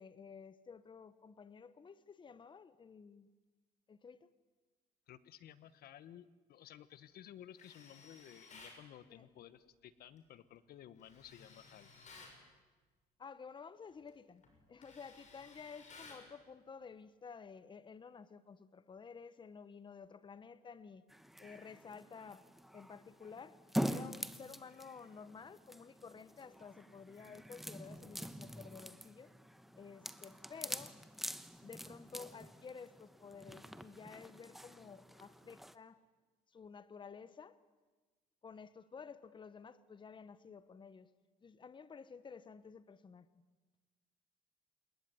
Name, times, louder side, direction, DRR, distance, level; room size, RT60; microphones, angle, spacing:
voice 1, 0.0-3.3 3.9-4.3 9.1-9.3 13.2-14.4 14.7-21.0 21.4-22.4 22.7-23.6 23.9-29.3 29.7-31.0 31.6-36.0 36.5-37.6 38.4-41.1 41.4-43.4, left 5 dB, 30° left, 1.1 m, -52 dB
voice 2, 5.1-11.9, left 11 dB, 65° left, 1.3 m, -55 dB
Tools, 7.5-8.8 11.0-12.4 13.9-14.1 14.4-16.3, left 4 dB, 45° left, 7.2 m, -57 dB
sound 1, 21.1-35.7, equal, ahead, 1.2 m, -45 dB
27.5 x 21.0 x 9.8 m
cardioid pair, 110°, 17 cm